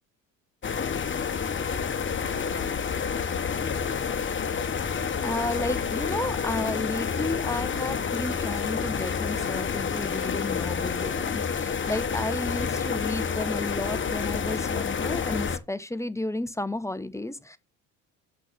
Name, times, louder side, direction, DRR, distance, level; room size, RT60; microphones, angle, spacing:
sound 1, 0.6-15.6, left 6 dB, 30° left, 1.2 m, -29 dB
voice 1, 5.2-17.6, left 1 dB, 5° left, 0.9 m, -32 dB
6.0 x 5.8 x 6.8 m
hypercardioid pair, 70°, 39 cm